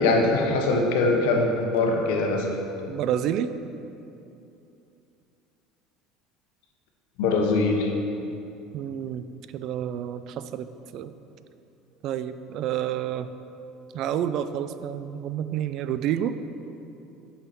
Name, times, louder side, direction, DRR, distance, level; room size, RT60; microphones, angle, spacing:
voice 1, 0.0-2.5 7.2-7.9, left 3 dB, 85° left, 2 dB, 1.2 m, -22 dB
voice 2, 2.9-3.5 8.7-9.2 9.5-11.1 12.0-13.3 13.9-16.4, right 10 dB, 55° right, 12 dB, 0.4 m, -29 dB
9.9 x 5.8 x 4.4 m, 2.8 s
cardioid pair, 135°, 0 cm